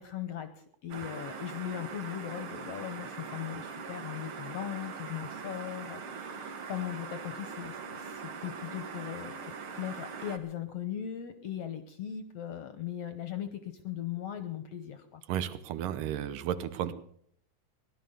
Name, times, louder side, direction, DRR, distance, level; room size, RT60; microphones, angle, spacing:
voice 1, 0.0-9.3 9.8-15.2, left 10 dB, 70° left, 10 dB, 1.6 m, -39 dB
sound 1, 0.9-10.4, right 5 dB, 50° right, 1.8 m, -42 dB
voice 2, 15.3-16.9, right 10 dB, 85° right, 12 dB, 2.6 m, -33 dB
17.5 x 11.5 x 6.7 m, 0.64 s
omnidirectional pair, 3.8 m